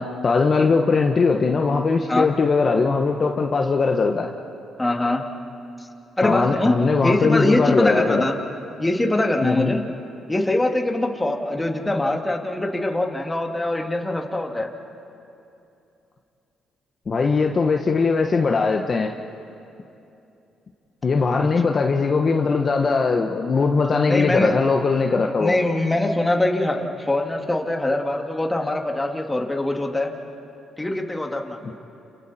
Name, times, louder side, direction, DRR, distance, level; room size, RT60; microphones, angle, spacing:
voice 1, 0.0-4.3 6.2-8.2 9.4-9.7 17.1-19.1 21.0-25.5 31.6-31.7, left 4 dB, 40° left, 3 dB, 1.2 m, -20 dB
voice 2, 4.8-5.2 6.2-6.7 7.0-8.4 8.8-9.8 10.3-14.7 21.4-21.5 24.1-24.6 25.4-30.1 30.8-31.6, left 1 dB, 15° left, 2 dB, 2.3 m, -23 dB
30.0 x 30.0 x 4.3 m, 2.7 s
cardioid pair, 90°, 0 cm